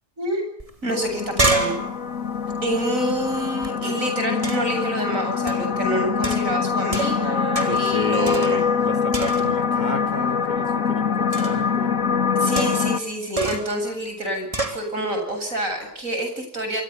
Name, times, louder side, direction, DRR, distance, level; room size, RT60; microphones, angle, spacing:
sound 1, 0.6-0.7 1.0-3.7 4.4-4.8 5.5-5.7 6.2-7.3 7.5-7.9 8.3-8.8 9.1-9.7 11.3-11.7 12.6-13.0 13.4-13.8 14.5-14.8, right 2 dB, 20° right, 4.0 m, -28 dB
voice 1, 0.8-1.9 2.6-8.6 12.3-16.8, right 1 dB, 55° right, 5 dB, 8.5 m, -27 dB
sound 2, 0.9-13.0, left 6 dB, 55° left, 1.9 m, -24 dB
voice 2, 7.4-12.0, left 1 dB, 30° left, 6 dB, 2.1 m, -32 dB
28.5 x 24.5 x 7.0 m, 0.65 s
omnidirectional pair, 1.7 m